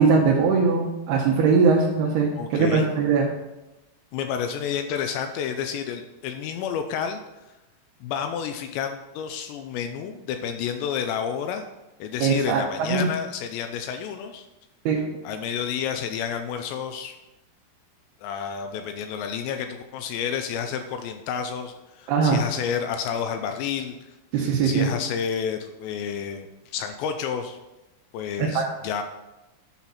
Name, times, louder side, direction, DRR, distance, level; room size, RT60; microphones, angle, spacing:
voice 1, 0.0-3.3 12.2-13.1 14.9-15.0 22.1-22.4 24.3-24.9 28.4-28.6, right 5 dB, 75° right, -3 dB, 2.6 m, -21 dB
voice 2, 2.4-2.9 4.1-7.2 8.0-11.7 12.0-14.5 15.2-17.2 18.2-27.6 28.1-29.0, left 7 dB, 80° left, 7 dB, 2.6 m, -30 dB
10.5 x 5.8 x 4.1 m, 1.0 s
omnidirectional pair, 5.3 m